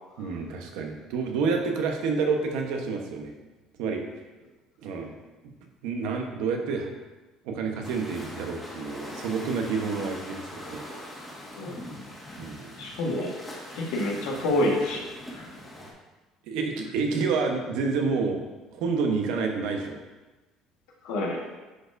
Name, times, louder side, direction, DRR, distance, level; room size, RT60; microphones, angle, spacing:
voice 1, 0.2-3.3 3.8-4.0 4.8-5.1 5.4-5.5 5.8-6.9 7.4-10.8 12.4-12.7 16.5-18.4 18.7-20.0, right 4 dB, 80° right, 3 dB, 1.0 m, -28 dB
sound 1, 7.8-15.9, left 1 dB, 10° left, 1.6 m, -42 dB
voice 2, 11.5-11.8 12.8-13.3 13.7-15.4 21.0-21.4, left 1 dB, 85° left, -2 dB, 1.5 m, -28 dB
9.8 x 4.3 x 2.6 m, 1.2 s
cardioid pair, 110°, 0 cm